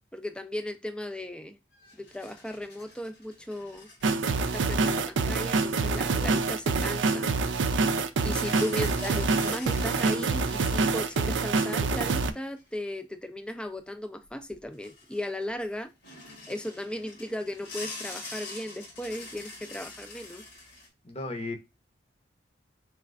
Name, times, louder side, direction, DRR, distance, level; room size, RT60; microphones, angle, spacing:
voice 1, 0.1-1.6 2.0-3.9 4.4-7.3 8.2-15.9 16.5-20.4, left 1 dB, 5° left, 0.4 m, -36 dB
sound 1, 1.7-4.3 4.9-5.0 8.3-12.7 14.2-14.3 14.5-15.6 16.0-20.9, left 3 dB, 80° left, 1.5 m, -45 dB
sound 2, 4.0-12.3, right 4 dB, 75° right, 0.4 m, -26 dB
voice 2, 21.0-21.6, left 2 dB, 35° left, 0.7 m, -35 dB
4.2 x 3.3 x 2.4 m
head